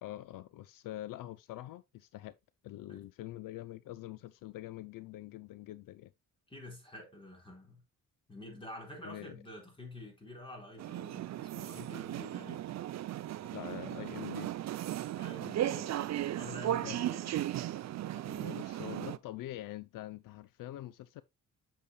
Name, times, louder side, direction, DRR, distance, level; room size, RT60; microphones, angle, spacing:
voice 1, 0.0-2.4 2.6-6.1 9.0-9.4 13.5-14.5 16.8-17.0 18.1-21.2, left 15 dB, 75° left, 0.5 m, -45 dB
voice 2, 6.5-7.8 8.3-12.7 15.2-16.1 16.3-17.4, left 1 dB, 15° left, 4.3 m, -48 dB
sound 1, 10.8-19.2, right 13 dB, 55° right, 0.5 m, -36 dB
8.4 x 6.9 x 2.3 m
cardioid pair, 110°, 33 cm